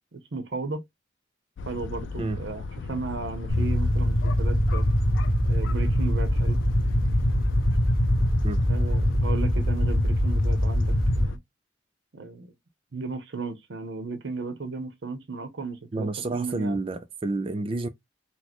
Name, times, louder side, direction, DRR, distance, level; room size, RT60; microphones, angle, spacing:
voice 1, 0.1-0.8 1.7-4.9 5.4-6.6 8.7-11.4 12.1-12.5 12.9-16.8, right 4 dB, 75° right, 0.7 m, -35 dB
sound 1, 1.6-11.4, left 4 dB, 85° left, 0.4 m, -36 dB
sound 2, 3.5-11.2, equal, 50° left, 1.0 m, -23 dB
voice 2, 15.9-17.9, right 2 dB, 30° right, 0.4 m, -29 dB
4.0 x 2.1 x 2.9 m
head